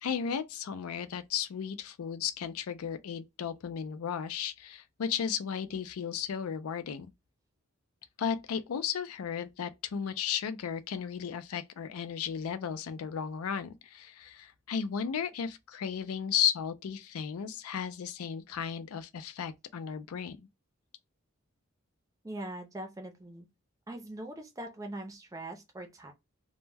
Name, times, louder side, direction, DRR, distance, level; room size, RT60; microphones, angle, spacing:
voice 1, 0.0-7.1 8.2-20.5, left 7 dB, 90° left, 0.4 m, -34 dB
voice 2, 22.2-23.5 23.9-26.1, right 1 dB, 15° right, 0.4 m, -42 dB
2.1 x 2.1 x 3.2 m
head